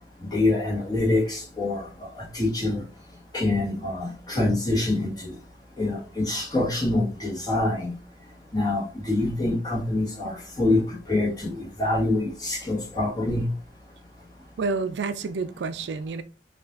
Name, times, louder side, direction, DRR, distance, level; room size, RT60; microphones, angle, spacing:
voice 1, 0.3-2.8 3.3-5.3 5.8-7.9 8.5-13.5, left 2 dB, 20° left, 1.2 m, -25 dB
voice 2, 14.6-16.2, right 4 dB, 70° right, 0.4 m, -29 dB
5.3 x 2.4 x 2.4 m
head